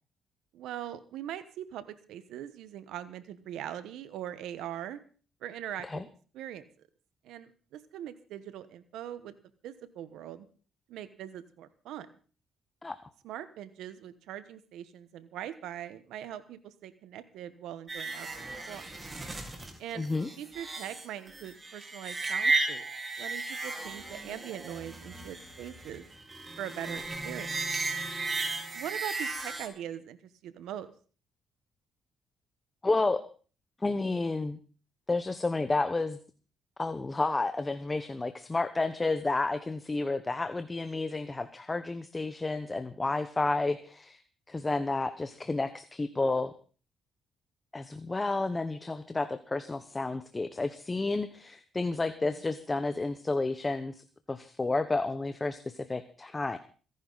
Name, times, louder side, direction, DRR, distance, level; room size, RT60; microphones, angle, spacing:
voice 1, 0.5-5.0 5.4-6.0 6.3-6.7 7.2-9.3 9.6-10.5 10.9-12.1 13.2-18.9 19.8-20.1 20.4-22.9 23.2-26.1 26.6-27.5 28.7-30.9, right 11 dB, 85° right, 13 dB, 1.1 m, -41 dB
sound 1, 17.9-29.7, right 3 dB, 25° right, 4.1 m, -35 dB
voice 2, 19.9-20.3 32.8-33.2 33.8-34.6 35.1-36.2 36.8-44.2 44.5-46.5 47.7-56.6, left 3 dB, 20° left, 11 dB, 1.0 m, -31 dB
25.5 x 11.0 x 4.0 m, 0.39 s
cardioid pair, 90°, 0 cm